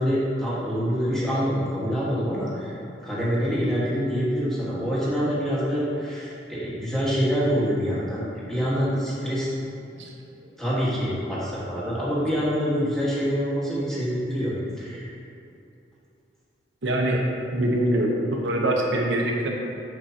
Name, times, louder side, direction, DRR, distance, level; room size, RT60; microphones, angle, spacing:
voice 1, 0.0-8.2 8.5-9.5 9.9-10.0 10.6-15.1, equal, 5° left, -9 dB, 1.7 m, -26 dB
voice 2, 16.8-17.2 17.5-19.5, right 1 dB, 85° right, -1 dB, 1.1 m, -23 dB
7.7 x 7.0 x 2.9 m, 2.6 s
head